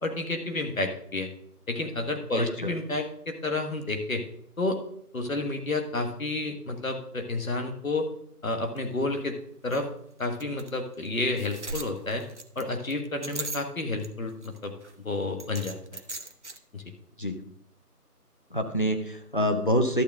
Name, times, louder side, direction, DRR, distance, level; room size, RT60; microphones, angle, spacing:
voice 1, 0.0-1.3 1.7-4.2 4.6-4.8 5.1-8.1 8.4-9.4 9.6-9.9 10.2-12.2 12.5-14.7 15.0-16.0 16.7-16.8, left 2 dB, 55° left, 4 dB, 1.6 m, -30 dB
voice 2, 2.3-2.7 17.2-17.4 18.5-20.0, equal, 30° left, 4 dB, 0.8 m, -26 dB
sound 1, 8.8-8.9 9.1-9.2 9.7-9.8 10.4-10.7 11.0-11.1 11.4-14.1 14.4-14.9 15.4-16.6, right 2 dB, 50° right, 0.7 m, -38 dB
12.0 x 7.7 x 3.6 m, 0.68 s
figure-of-eight pair, 165°, 48 cm